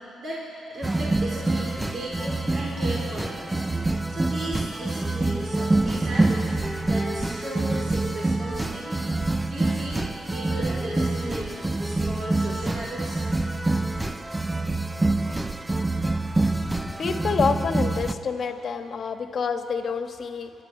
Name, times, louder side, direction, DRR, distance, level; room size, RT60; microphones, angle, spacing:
voice 1, 0.2-3.6 4.1-6.5 6.8-9.0 9.5-10.0 10.3-11.5 11.8-13.2, right 1 dB, 50° right, -5 dB, 4.4 m, -35 dB
sound 1, 0.8-18.1, right 2 dB, 15° right, 0.8 m, -26 dB
voice 2, 16.9-20.5, left 5 dB, 50° left, 6 dB, 1.5 m, -27 dB
28.5 x 12.0 x 9.1 m, 2.6 s
cardioid pair, 90°, 0 cm